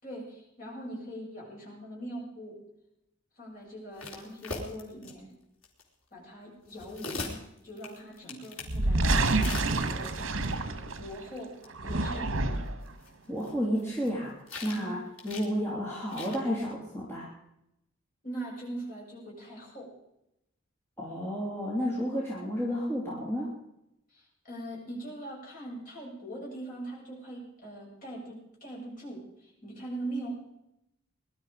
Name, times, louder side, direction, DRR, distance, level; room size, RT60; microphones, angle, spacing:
voice 1, 0.0-2.6 3.4-5.3 6.1-7.4 7.6-10.4 11.0-12.3 14.7-15.0 18.2-19.9 24.1-30.3, right 1 dB, 40° left, -4 dB, 7.3 m, -41 dB
sound 1, 4.0-5.1 5.6-5.8 6.6-8.8 9.3-10.1 11.4-11.5 11.6-11.7 11.9-12.0 12.9-14.1 14.5-14.9 15.2-15.5 16.1-16.4, left 3 dB, 75° left, 3.8 m, -40 dB
sound 2, 8.6-11.2 11.7-12.9, right 2 dB, 70° right, 1.5 m, -28 dB
voice 2, 13.3-14.3 14.6-17.3 21.0-23.5, equal, 10° left, -6 dB, 3.2 m, -31 dB
21.0 x 12.0 x 5.0 m, 0.84 s
head